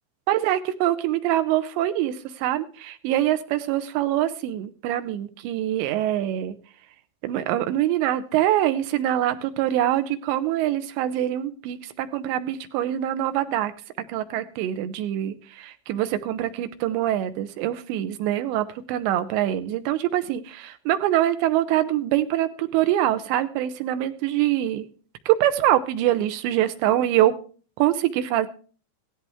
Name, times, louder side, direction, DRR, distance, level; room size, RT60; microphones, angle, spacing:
voice 1, 0.3-6.6 7.2-13.7 14.1-24.9 25.3-27.3 27.8-28.5, right 12 dB, 80° right, 10 dB, 3.1 m, -24 dB
16.5 x 13.5 x 3.5 m, 0.41 s
omnidirectional pair, 5.1 m